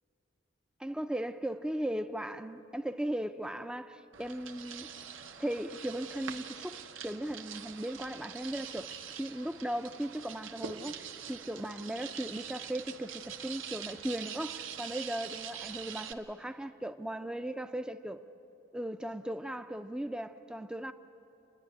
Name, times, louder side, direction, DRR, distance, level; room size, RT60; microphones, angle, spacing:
voice 1, 0.8-4.9 5.4-18.2 18.7-20.9, right 1 dB, 5° right, 0.5 m, -37 dB
sound 1, 4.1-16.1, right 8 dB, 70° right, 0.9 m, -44 dB
29.5 x 10.5 x 9.8 m
head